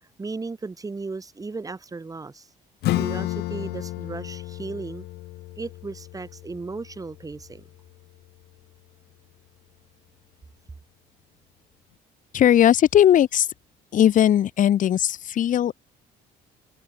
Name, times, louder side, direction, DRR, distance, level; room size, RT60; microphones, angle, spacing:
voice 1, 0.2-2.5 2.9-5.1 5.6-7.6, right 3 dB, 20° right, 5.0 m, -35 dB
Acoustic guitar / Strum, 2.8-8.1, left 17 dB, 75° left, 0.6 m, -32 dB
voice 2, 12.3-13.5 13.9-15.8, left 10 dB, 50° left, 1.1 m, -18 dB
cardioid pair, 110°, 17 cm